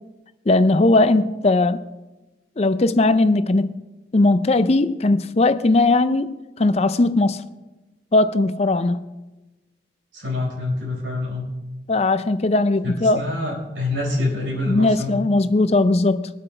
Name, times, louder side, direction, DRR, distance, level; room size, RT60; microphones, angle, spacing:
voice 1, 0.5-1.8 2.6-3.8 4.1-7.4 8.1-9.0 11.9-13.3 14.7-16.3, left 2 dB, 35° left, 0.5 m, -18 dB
voice 2, 10.1-11.5 12.8-15.2, left 2 dB, 90° right, 4.7 m, -26 dB
21.5 x 8.4 x 3.3 m
head